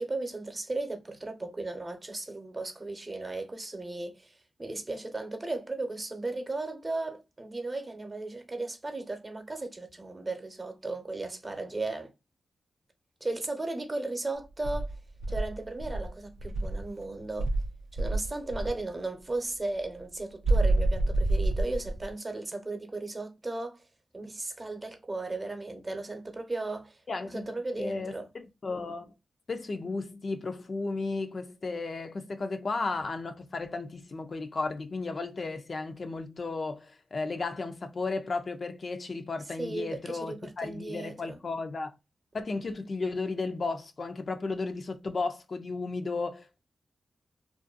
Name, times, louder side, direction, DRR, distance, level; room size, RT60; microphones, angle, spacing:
voice 1, 0.0-4.3 4.6-12.1 13.2-15.0 15.3-17.5 17.9-23.8 24.1-27.0 27.2-28.2 39.6-41.4, right 2 dB, 35° right, 0.8 m, -36 dB
Insect, 14.6-16.9 17.4-18.8 20.4-22.1, right 2 dB, 65° right, 0.4 m, -28 dB
voice 2, 27.1-27.5 27.8-29.1 29.5-41.9 42.3-46.6, left 3 dB, 55° left, 0.4 m, -34 dB
2.5 x 2.2 x 2.4 m
cardioid pair, 50°, 0 cm